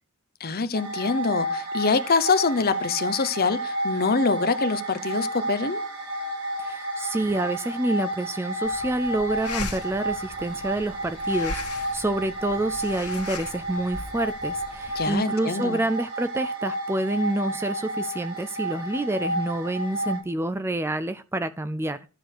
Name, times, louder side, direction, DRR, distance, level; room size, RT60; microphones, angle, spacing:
voice 1, 0.4-5.8 14.9-15.8, left 4 dB, 45° left, 0.9 m, -25 dB
sound 1, 0.7-20.2, right 1 dB, 65° right, 4.5 m, -31 dB
voice 2, 6.6-22.1, right 1 dB, 10° right, 0.4 m, -28 dB
sound 2, 8.6-15.1, left 3 dB, 80° left, 1.8 m, -39 dB
12.5 x 4.7 x 6.5 m
head